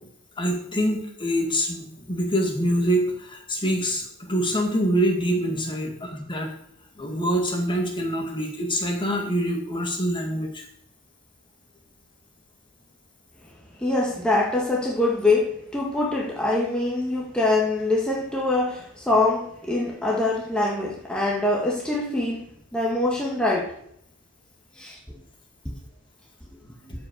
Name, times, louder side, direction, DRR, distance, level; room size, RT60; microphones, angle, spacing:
voice 1, 0.4-6.5 7.0-10.6 26.6-26.9, equal, 20° left, 1.8 m, -25 dB
voice 2, 13.8-22.5 22.7-23.7 24.7-25.0, left 2 dB, 5° left, 1.4 m, -24 dB
13.5 x 5.3 x 5.2 m
head